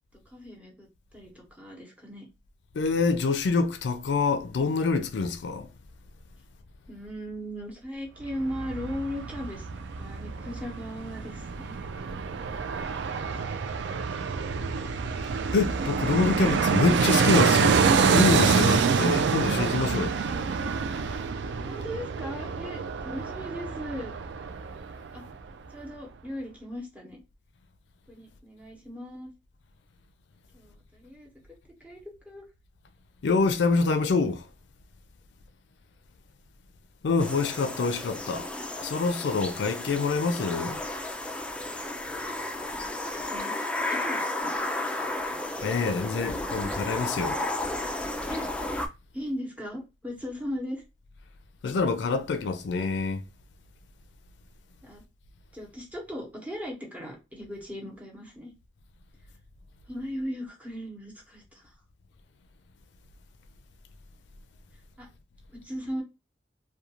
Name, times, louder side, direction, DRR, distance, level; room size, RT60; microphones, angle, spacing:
voice 1, 0.3-0.9 1.1-2.3 6.9-9.7 10.0-11.7 13.1-13.2 13.5-13.6 14.2-14.4 21.1-21.2 21.7-24.1 25.1-25.3 25.7-27.2 28.1-29.3 30.5-31.3 31.8-32.4 43.0-43.6 43.9-44.6 48.3-48.5 49.1-50.8 54.8-55.0 55.5-58.5 59.9-61.7 65.0-65.1 65.5-66.0, equal, 10° right, 0.9 m, -38 dB
voice 2, 2.7-5.7 15.5-20.2 33.2-34.5 37.0-38.5 38.8-40.8 45.6-47.4 51.6-53.2, left 4 dB, 85° left, 0.4 m, -26 dB
Fixed-wing aircraft airplane, 8.2-25.2 25.5-25.6, right 5 dB, 75° right, 0.3 m, -27 dB
sound 1, 37.2-48.9, left 2 dB, 5° left, 0.3 m, -33 dB
2.4 x 2.2 x 2.8 m
head